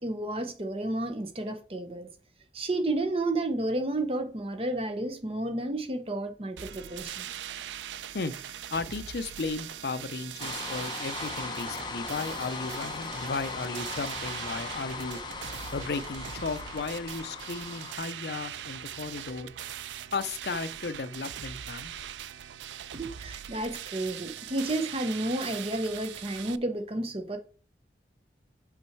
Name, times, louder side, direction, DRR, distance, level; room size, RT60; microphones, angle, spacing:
voice 1, 0.0-2.1 2.5-7.3 22.9-27.4, right 2 dB, 30° right, 0.8 m, -31 dB
sound 1, 6.6-26.6, right 10 dB, 85° right, 0.4 m, -41 dB
voice 2, 8.7-15.2 15.7-19.5 20.1-21.9, left 4 dB, 65° left, 0.5 m, -35 dB
sound 2, 10.4-18.0, left 4 dB, 25° left, 0.8 m, -38 dB
6.2 x 5.7 x 4.6 m
head